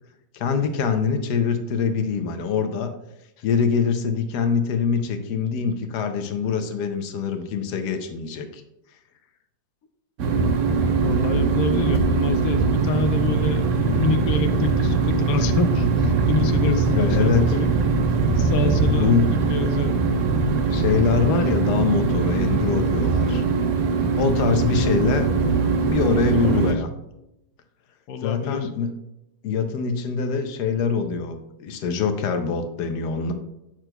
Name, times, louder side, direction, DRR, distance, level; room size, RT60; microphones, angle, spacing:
voice 1, 0.3-2.9 3.4-8.6 16.9-17.5 19.0-19.3 20.7-23.4 24.1-25.3 25.8-26.9 28.2-28.9 29.4-33.3, left 6 dB, 85° left, 8 dB, 1.3 m, -24 dB
sound 1, 10.2-26.7, right 4 dB, 60° right, 0.9 m, -21 dB
voice 2, 10.9-17.7 18.4-20.0 24.8-24.9 26.3-26.8 28.1-28.7, left 4 dB, 70° left, 7 dB, 1.0 m, -28 dB
8.9 x 6.0 x 2.2 m, 0.89 s
omnidirectional pair, 1.8 m